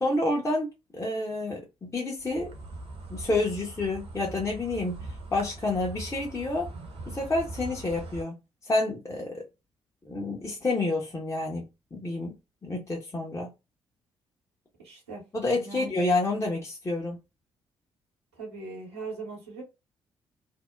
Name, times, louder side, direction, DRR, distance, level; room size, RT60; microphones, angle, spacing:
voice 1, 0.0-2.5 3.1-5.0 5.3-6.7 7.1-8.3 8.6-9.4 10.0-11.6 11.9-12.3 12.6-13.5 15.3-17.2, left 2 dB, 20° left, 0.8 m, -29 dB
Insect, 2.2-8.2, right 2 dB, 50° right, 0.7 m, -41 dB
voice 2, 14.8-15.2 15.6-15.9 18.3-19.6, right 4 dB, 85° right, 0.9 m, -39 dB
2.7 x 2.0 x 2.2 m
figure-of-eight pair, 40°, 13 cm